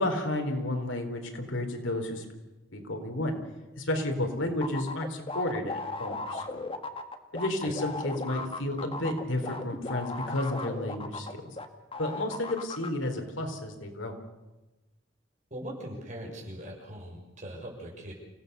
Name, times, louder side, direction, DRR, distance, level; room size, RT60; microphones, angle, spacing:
voice 1, 0.0-2.3 2.7-3.4 3.8-6.7 7.3-11.4 12.0-14.1, left 1 dB, 85° left, 4 dB, 4.2 m, -32 dB
sound 1, 4.6-11.7 11.9-12.9, left 3 dB, 30° left, 1.8 m, -36 dB
voice 2, 15.5-18.1, right 1 dB, 40° right, 0 dB, 6.8 m, -41 dB
28.5 x 17.5 x 7.0 m, 1.1 s
head